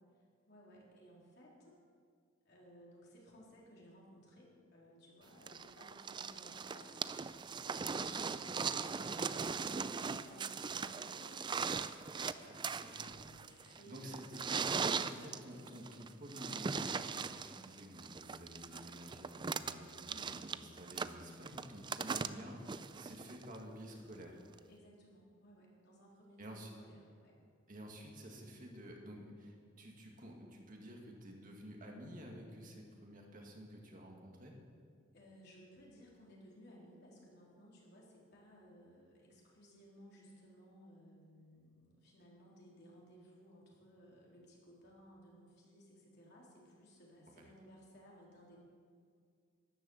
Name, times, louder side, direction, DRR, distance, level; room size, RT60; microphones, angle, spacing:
voice 1, 0.5-1.8 2.4-7.4 7.6-9.2 9.5-11.5 12.0-14.6 15.1-15.3 20.1-20.4 24.7-27.4 35.1-48.6, equal, 55° left, -4 dB, 3.7 m, -59 dB
sound 1, 5.5-23.6 24.6-24.7, right 5 dB, 25° right, 0.4 m, -40 dB
voice 2, 12.4-13.1 13.6-24.4 26.4-26.7 27.7-34.5 47.4-47.5, equal, 45° right, 0 dB, 2.1 m, -51 dB
13.0 x 11.0 x 7.1 m, 2.2 s
head